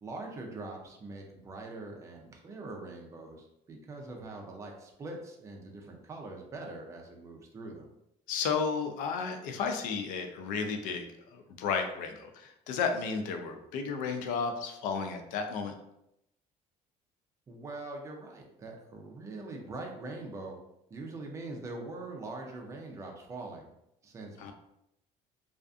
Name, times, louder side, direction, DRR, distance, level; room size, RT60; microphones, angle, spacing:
voice 1, 0.0-7.9 17.5-20.6 20.9-23.7 24.0-24.5, right 2 dB, 20° right, 1 dB, 0.4 m, -43 dB
voice 2, 8.3-11.1 11.3-15.7 24.4-24.5, left 5 dB, 90° left, 5 dB, 0.4 m, -33 dB
2.4 x 2.4 x 2.3 m, 0.81 s
cardioid pair, 150°, 14 cm